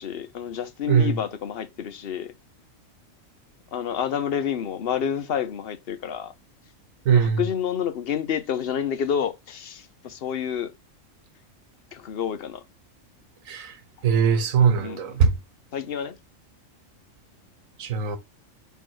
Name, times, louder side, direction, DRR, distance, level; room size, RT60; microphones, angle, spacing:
voice 1, 0.0-2.3 3.7-6.3 7.1-10.7 11.9-12.6 14.8-15.2 15.7-16.1, left 8 dB, 55° left, 0.8 m, -29 dB
voice 2, 7.1-7.4 13.5-13.7 14.0-15.3 17.8-18.2, right 6 dB, 85° right, 1.3 m, -20 dB
6.1 x 3.5 x 4.5 m
omnidirectional pair, 1.4 m